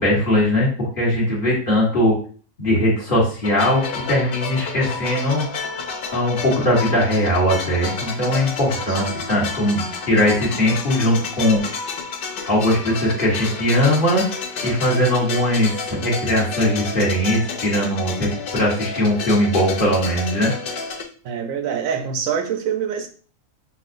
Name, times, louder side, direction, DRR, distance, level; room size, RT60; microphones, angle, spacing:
voice 1, 0.0-2.1 2.6-5.5 6.1-11.6 12.5-14.2 14.6-20.5, left 1 dB, 40° left, -5 dB, 1.5 m, -20 dB
sound 1, 3.4-21.0, left 4 dB, 60° left, 0.6 m, -30 dB
voice 2, 8.9-9.3 21.2-23.1, right 7 dB, 75° right, 6 dB, 1.0 m, -25 dB
5.6 x 2.4 x 2.5 m, 0.41 s
omnidirectional pair, 1.5 m